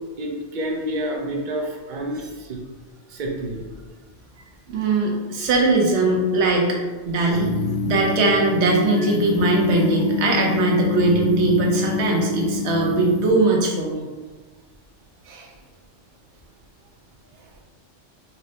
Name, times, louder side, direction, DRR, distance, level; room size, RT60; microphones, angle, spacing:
voice 1, 0.2-2.6 3.1-3.7 15.4-15.5, right 1 dB, 55° right, 0 dB, 0.6 m, -29 dB
voice 2, 4.7-6.8 7.1-7.5 7.8-14.0 15.3-15.5, right 3 dB, 75° right, 0 dB, 0.9 m, -20 dB
sound 1, 7.3-13.3, left 7 dB, 70° left, 0.9 m, -26 dB
4.2 x 2.0 x 2.7 m, 1.3 s
omnidirectional pair, 1.2 m